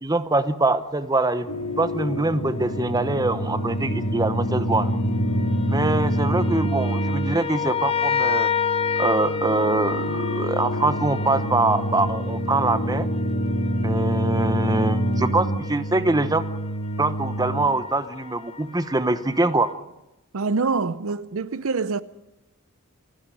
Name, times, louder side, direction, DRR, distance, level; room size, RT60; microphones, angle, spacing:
voice 1, 0.0-1.5 1.8-4.9 5.7-8.5 9.0-13.1 13.8-16.5 17.0-19.7, right 2 dB, 20° right, 0.9 m, -24 dB
sound 1, 1.5-17.7, equal, 80° left, 2.8 m, -26 dB
sound 2, 2.6-2.8 3.6-19.7, left 7 dB, 25° left, 0.7 m, -32 dB
voice 2, 20.3-22.0, right 4 dB, 70° right, 0.7 m, -25 dB
28.5 x 11.5 x 9.1 m
head